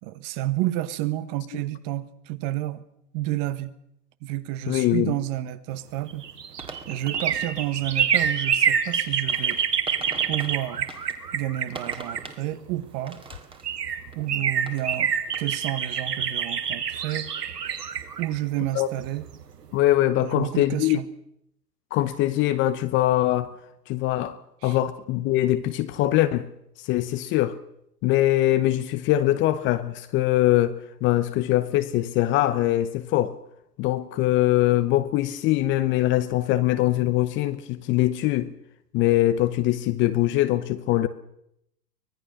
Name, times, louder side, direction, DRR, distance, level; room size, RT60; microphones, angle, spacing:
voice 1, 0.0-2.9 3.1-3.7 4.2-6.3 6.9-9.6 10.3-10.9 11.3-13.2 14.1-17.3 18.2-19.2 20.2-21.0 24.6-24.8, right 14 dB, 35° right, 1.4 m, -30 dB
voice 2, 4.7-5.1 18.7-18.9 19.7-21.0 21.9-23.5 23.9-24.4 24.6-26.5 26.8-27.6 28.0-33.4 33.8-38.5 38.9-41.1, left 14 dB, 25° left, 0.9 m, -22 dB
sound 1, 6.0-12.8 13.3-13.4 13.6-19.4 19.8-19.9, right 7 dB, 70° right, 2.5 m, -27 dB
sound 2, 6.5-7.6 8.0-8.3 9.0-11.2 11.6-12.5 12.8-15.0 15.3-15.5, right 4 dB, 10° right, 2.0 m, -43 dB
24.5 x 19.0 x 6.5 m
hypercardioid pair, 115°, 49 cm